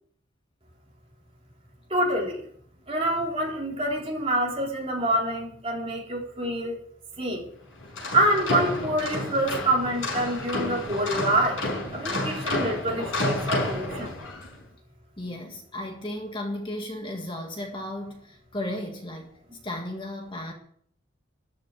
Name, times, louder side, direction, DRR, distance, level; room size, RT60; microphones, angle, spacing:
voice 1, 1.9-2.4 2.9-6.8 7.2-7.5 8.1-11.6 11.9-14.1, right 1 dB, 30° right, 3.6 m, -26 dB
sound 1, 7.8-14.5, left 2 dB, 75° left, 5.9 m, -30 dB
voice 2, 15.2-19.3 19.6-20.5, left 1 dB, 25° left, 1.8 m, -34 dB
13.5 x 6.8 x 9.0 m
head